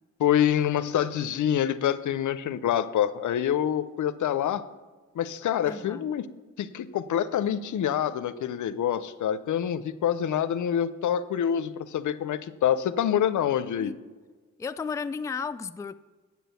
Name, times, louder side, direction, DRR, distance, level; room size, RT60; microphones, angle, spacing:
voice 1, 0.2-4.6 5.2-6.2 6.6-13.9, left 9 dB, 75° left, 0.5 m, -26 dB
voice 2, 5.7-6.1 13.8-14.0 14.6-15.9, left 5 dB, 10° left, 0.3 m, -34 dB
8.2 x 6.2 x 6.8 m
cardioid pair, 65°, 31 cm